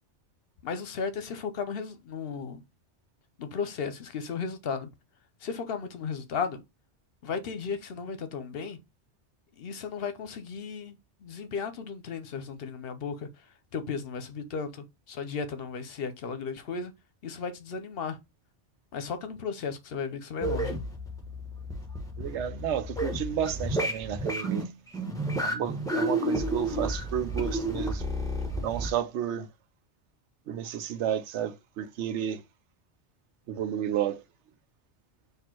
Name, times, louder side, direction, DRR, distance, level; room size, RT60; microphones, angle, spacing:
voice 1, 0.6-2.6 3.4-4.9 5.4-6.6 7.2-8.8 9.6-13.3 13.7-16.9 17.2-18.2 18.9-20.8, left 5 dB, 60° left, 0.9 m, -35 dB
sound 1, 20.4-28.9, right 1 dB, 5° left, 1.0 m, -31 dB
voice 2, 22.2-24.7 25.4-28.0 28.6-29.5 30.5-32.4 33.5-34.2, right 10 dB, 85° right, 0.9 m, -32 dB
4.2 x 2.7 x 4.4 m
omnidirectional pair, 1.2 m